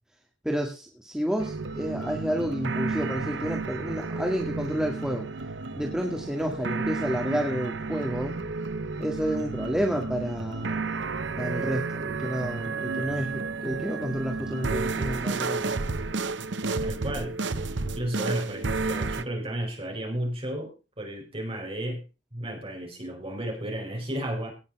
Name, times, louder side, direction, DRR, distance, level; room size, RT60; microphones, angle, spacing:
voice 1, 0.4-5.3 5.8-8.3 9.0-10.8 11.4-15.7, equal, 5° right, 1 dB, 1.8 m, -30 dB
sound 1, 1.4-19.2, right 3 dB, 70° right, 0.9 m, -32 dB
voice 2, 16.7-22.0 22.3-24.5, right 1 dB, 30° right, 0 dB, 5.1 m, -33 dB
18.0 x 7.2 x 5.8 m, 0.32 s
head